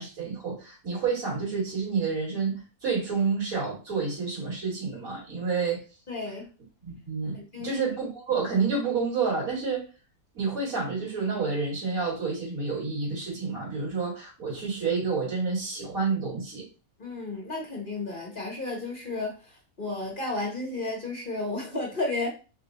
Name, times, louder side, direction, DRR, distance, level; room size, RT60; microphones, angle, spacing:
voice 1, 0.0-5.8 6.8-9.8 10.3-16.6, right 5 dB, 65° right, -7 dB, 2.8 m, -29 dB
voice 2, 6.1-6.5 7.3-7.8 17.0-22.3, left 2 dB, 35° left, -2 dB, 1.4 m, -33 dB
4.5 x 2.6 x 4.0 m, 0.33 s
omnidirectional pair, 1.5 m